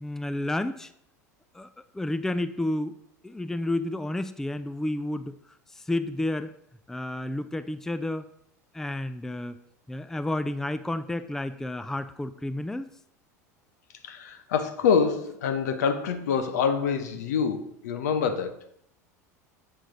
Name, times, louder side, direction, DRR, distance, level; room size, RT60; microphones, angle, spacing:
voice 1, 0.0-0.9 1.5-1.7 1.9-3.0 3.2-5.3 5.8-6.5 6.9-8.3 8.7-9.6 9.9-12.9, left 1 dB, 5° left, 0.4 m, -31 dB
voice 2, 14.0-18.5, left 6 dB, 75° left, 0.8 m, -26 dB
7.7 x 6.4 x 3.9 m
hypercardioid pair, 80°, 9 cm